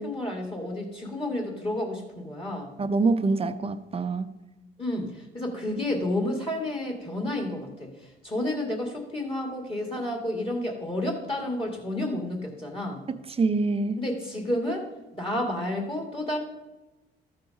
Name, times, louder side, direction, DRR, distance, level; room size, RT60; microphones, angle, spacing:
voice 1, 0.0-2.7 4.8-13.0 14.0-14.9 15.1-16.4, left 1 dB, 25° left, 1 dB, 2.1 m, -31 dB
voice 2, 2.8-4.3 5.7-5.8 13.1-14.0, right 3 dB, 30° right, 10 dB, 0.7 m, -26 dB
13.0 x 4.8 x 5.2 m, 1.0 s
cardioid pair, 90°, 20 cm